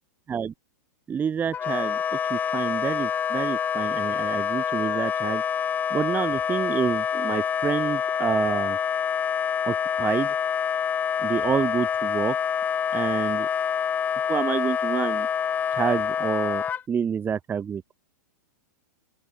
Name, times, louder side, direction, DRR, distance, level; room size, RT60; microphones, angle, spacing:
voice 1, 1.1-5.4 5.9-8.8 9.6-10.3 11.2-12.4 12.9-13.5 14.3-15.3 15.7-17.8, right 7 dB, 15° right, 1.0 m, -28 dB
Wind instrument woodwind instrument, 1.5-16.8, left 8 dB, 15° left, 0.4 m, -26 dB
open air
hypercardioid pair, 130°, 11 cm